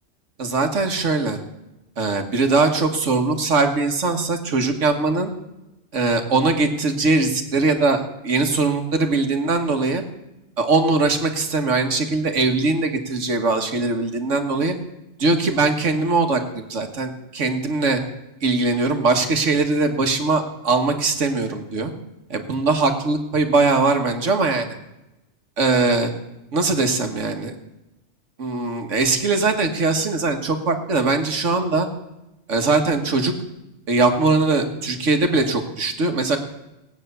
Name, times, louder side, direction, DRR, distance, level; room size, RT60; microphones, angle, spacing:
voice 1, 0.4-1.4 2.0-5.3 5.9-10.0 10.6-14.8 15.2-18.0 18.4-21.9 22.3-24.7 25.6-26.1 26.5-27.5 28.4-31.9 32.5-33.3 33.9-36.4, right 3 dB, 90° right, 5 dB, 1.9 m, -21 dB
18.0 x 9.2 x 6.8 m, 0.94 s
omnidirectional pair, 1.2 m